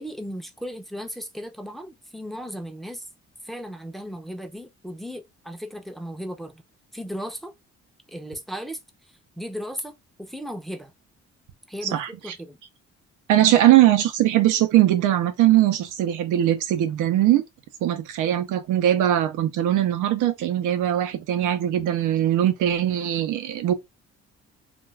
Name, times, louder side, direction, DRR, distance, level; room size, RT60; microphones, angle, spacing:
voice 1, 0.0-3.1 3.4-6.6 6.9-7.5 8.1-10.9 11.7-12.6, equal, ahead, 0.5 m, -36 dB
voice 2, 13.3-17.4 17.8-23.7, right 12 dB, 85° right, 0.6 m, -20 dB
2.4 x 2.3 x 3.2 m
cardioid pair, 90°, 30 cm